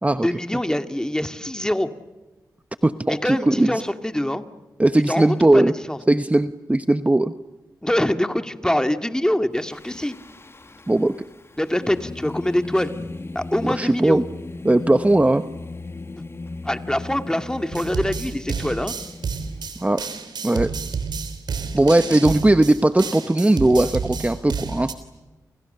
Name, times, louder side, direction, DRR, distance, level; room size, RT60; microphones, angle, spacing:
voice 1, 0.2-1.9 3.1-4.4 5.1-6.0 7.8-10.2 11.6-12.9 13.3-14.2 16.6-18.9, left 1 dB, 10° left, 8 dB, 2.2 m, -24 dB
voice 2, 2.8-3.7 4.8-5.7 6.1-7.3 10.9-11.1 13.6-14.2 14.6-15.4 19.8-20.0 20.4-20.7 21.7-24.9, right 1 dB, 20° right, 10 dB, 1.0 m, -18 dB
Singing, 9.6-20.0, left 3 dB, 35° left, 1.5 m, -37 dB
sound 1, 17.7-24.9, right 5 dB, 80° right, 3.4 m, -30 dB
29.5 x 29.0 x 6.9 m, 1.1 s
cardioid pair, 50°, 7 cm